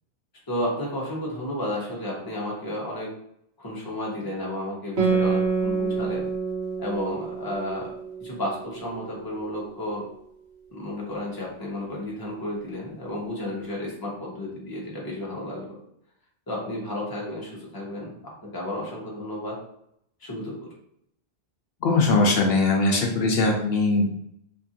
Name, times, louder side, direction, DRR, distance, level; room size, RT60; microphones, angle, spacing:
voice 1, 0.5-3.1 3.6-6.3 6.8-7.9 8.2-10.1 10.7-15.8 16.5-18.1 18.4-19.6 20.2-20.7, left 1 dB, 25° left, -3 dB, 0.7 m, -32 dB
Guitar, 5.0-9.9, right 5 dB, 75° right, 1.1 m, -28 dB
voice 2, 21.8-24.3, left 3 dB, 75° left, 0 dB, 0.8 m, -21 dB
2.8 x 2.4 x 2.7 m, 0.74 s
omnidirectional pair, 1.1 m